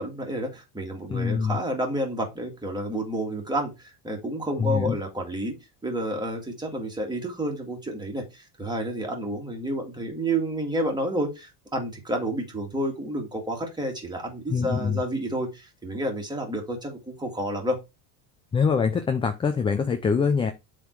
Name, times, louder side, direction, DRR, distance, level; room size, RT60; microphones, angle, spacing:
voice 1, 0.0-5.5 5.8-17.8, right 1 dB, 10° right, 1 dB, 2.2 m, -30 dB
voice 2, 1.1-1.6 4.6-5.0 14.5-15.0 18.5-20.5, left 6 dB, 15° left, 8 dB, 0.3 m, -24 dB
7.6 x 3.8 x 4.6 m, 0.24 s
cardioid pair, 135°, 48 cm